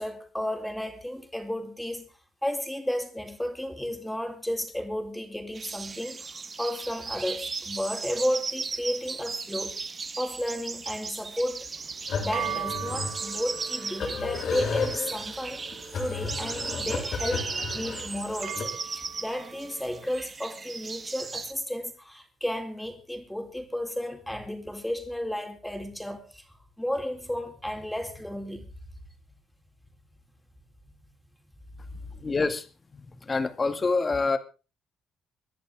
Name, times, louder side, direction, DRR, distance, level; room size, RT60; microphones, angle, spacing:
voice 1, 0.0-2.1 2.4-6.3 6.6-9.8 10.2-11.7 12.2-15.6 15.9-17.5 17.7-26.4 26.8-28.6 32.1-32.2, equal, 5° left, 4 dB, 4.1 m, -33 dB
sound 1, 5.5-21.5, right 4 dB, 35° right, 1.4 m, -37 dB
sound 2, 11.7-20.2, right 10 dB, 65° right, 1.4 m, -40 dB
sound 3, 12.1-18.6, left 5 dB, 60° left, 6.3 m, -34 dB
voice 2, 32.2-32.7 32.9-34.4, left 3 dB, 30° left, 9 dB, 2.2 m, -26 dB
26.0 x 10.5 x 3.8 m, 0.34 s
cardioid pair, 90°, 0 cm